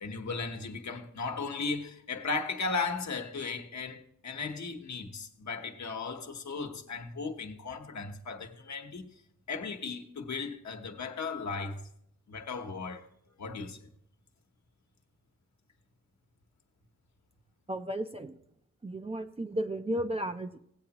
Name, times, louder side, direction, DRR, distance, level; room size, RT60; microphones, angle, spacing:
voice 1, 0.0-9.1 9.5-11.9 12.3-13.1 13.4-13.9, left 4 dB, 60° left, 1.1 m, -36 dB
voice 2, 17.7-18.3 18.8-20.6, right 1 dB, 20° right, 0.5 m, -34 dB
17.5 x 8.4 x 2.9 m
wide cardioid pair, 140°, 32 cm